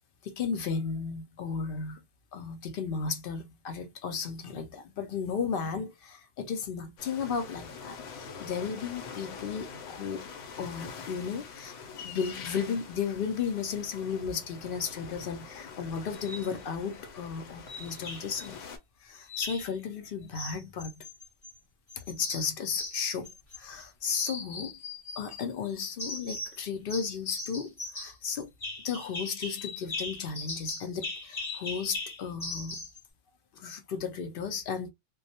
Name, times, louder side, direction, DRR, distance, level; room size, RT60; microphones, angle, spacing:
voice 1, 0.2-2.0 2.3-10.3 10.6-11.7 12.0-18.7 19.0-21.1 22.0-23.3 23.6-24.8 25.2-28.5 28.8-32.8 33.5-34.9, left 6 dB, 60° left, 0.6 m, -34 dB
sound 1, 7.0-18.8, left 5 dB, 80° left, 0.9 m, -45 dB
sound 2, 16.1-16.5 17.7-18.5 19.3-19.7 20.3-21.6 21.9-23.8 24.1-25.5 26.0-26.6 26.9-33.0, left 2 dB, 30° left, 1.0 m, -39 dB
2.2 x 2.0 x 2.7 m
omnidirectional pair, 1.2 m